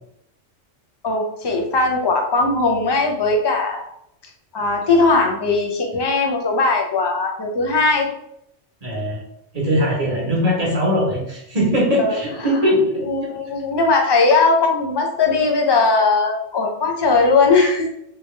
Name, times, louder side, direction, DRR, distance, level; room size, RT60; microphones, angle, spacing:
voice 1, 1.0-3.8 4.5-8.1 12.0-12.2 13.1-17.9, left 3 dB, 35° left, 2 dB, 0.4 m, -18 dB
voice 2, 8.8-9.2 9.5-13.3, equal, 30° right, -4 dB, 1.2 m, -20 dB
3.5 x 3.0 x 3.3 m, 0.75 s
omnidirectional pair, 1.3 m